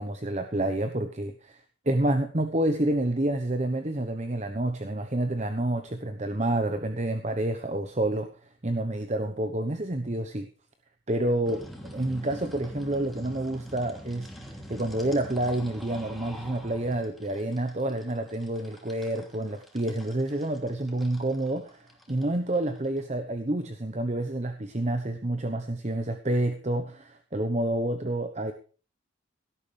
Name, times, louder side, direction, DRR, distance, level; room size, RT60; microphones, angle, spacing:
voice 1, 0.0-8.3 8.6-10.5 11.1-28.5, right 1 dB, 35° right, 7 dB, 1.0 m, -29 dB
sound 1, 11.4-23.0, equal, ahead, 2.8 m, -45 dB
17.5 x 13.0 x 3.4 m, 0.38 s
head